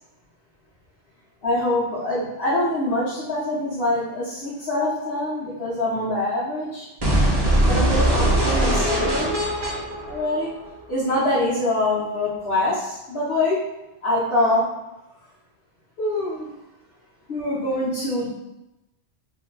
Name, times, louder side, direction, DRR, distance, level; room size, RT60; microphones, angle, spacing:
voice 1, 1.4-6.9 7.6-9.4 10.1-10.5 10.9-13.6 14.0-14.6 16.0-16.5 17.3-18.3, left 1 dB, 60° left, -11 dB, 1.1 m, -24 dB
sound 1, 7.0-11.0, right 1 dB, 30° right, 0.5 m, -21 dB
2.8 x 2.2 x 3.8 m, 0.94 s
omnidirectional pair, 1.1 m